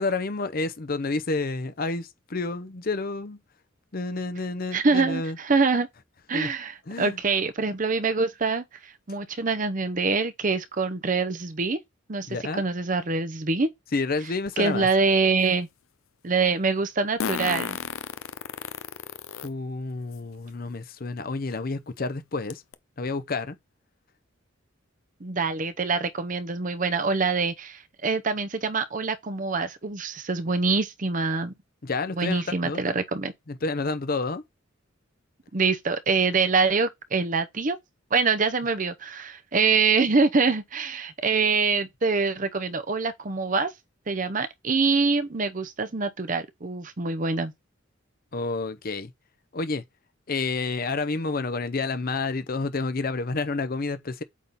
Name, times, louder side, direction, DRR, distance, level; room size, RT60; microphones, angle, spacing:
voice 1, 0.0-3.4 3.9-5.4 6.3-6.5 6.9-7.2 12.3-12.6 13.9-14.9 19.4-22.6 23.0-23.6 31.8-32.8 33.5-34.4 48.3-49.1 49.5-49.8 50.3-54.2, left 3 dB, 45° left, 0.7 m, -29 dB
voice 2, 4.7-5.9 6.3-11.8 12.1-12.3 12.6-13.7 14.6-15.7 16.2-17.8 25.2-31.5 32.2-33.3 35.5-37.8 38.1-43.7 44.1-47.5, right 4 dB, 40° right, 0.7 m, -25 dB
Fart, 14.5-14.6 17.2-19.5 20.1-20.2 21.5-21.6 22.0-22.1 22.5-22.7, left 7 dB, 85° left, 0.6 m, -32 dB
8.3 x 3.7 x 4.1 m
head